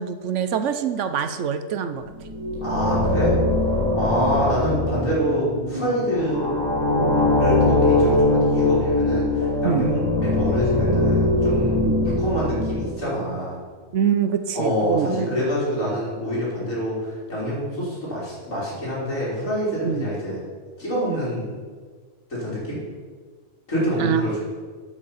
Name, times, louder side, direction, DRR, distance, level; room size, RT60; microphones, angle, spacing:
voice 1, 0.0-2.1 9.6-9.9 11.8-12.1 13.9-15.4 19.8-20.1 24.0-24.4, right 8 dB, 70° right, 10 dB, 1.0 m, -25 dB
sound 1, 2.1-13.3, left 2 dB, 15° right, 2.4 m, -22 dB
voice 2, 2.6-3.4 3.9-6.5 7.4-13.6 14.5-20.4 20.8-21.5 22.3-22.8 23.7-24.4, equal, 80° left, -7 dB, 4.5 m, -26 dB
12.0 x 6.4 x 5.7 m, 1.5 s
omnidirectional pair, 1.4 m